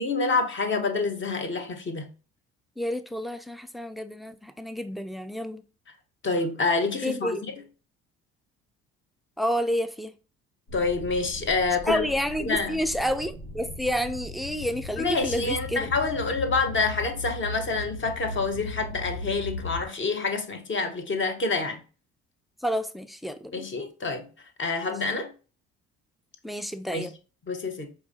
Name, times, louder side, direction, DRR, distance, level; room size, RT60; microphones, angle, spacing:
voice 1, 0.0-2.1 6.2-7.5 10.7-12.0 12.4-12.8 15.0-21.8 23.5-24.3 24.6-25.3 26.9-27.1 27.5-27.9, left 3 dB, 35° left, 0.9 m, -27 dB
voice 2, 2.8-5.6 7.0-7.5 9.4-10.1 11.9-15.9 22.6-23.7 26.4-27.1, equal, ahead, 0.3 m, -29 dB
sound 1, 10.7-19.9, left 2 dB, 90° left, 1.8 m, -38 dB
4.7 x 2.7 x 2.6 m
hypercardioid pair, 60°, 32 cm